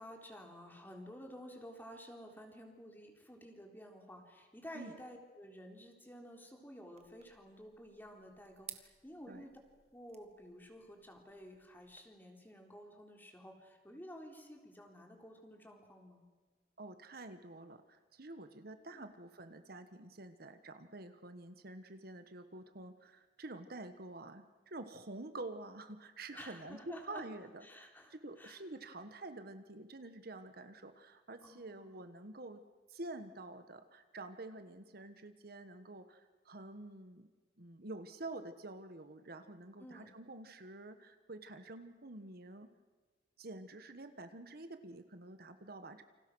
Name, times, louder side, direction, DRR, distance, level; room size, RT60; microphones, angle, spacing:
voice 1, 0.0-9.5 9.9-16.2 18.9-19.1 26.3-27.2 27.6-28.6 31.4-32.0 39.8-40.1, equal, 10° left, 2 dB, 3.9 m, -52 dB
sound 1, 7.0-12.0, right 9 dB, 40° right, 1.8 m, -57 dB
voice 2, 16.8-32.6 32.9-37.3 37.6-42.7 43.4-46.0, right 2 dB, 60° right, 9 dB, 1.4 m, -48 dB
29.0 x 26.5 x 6.3 m, 1.3 s
head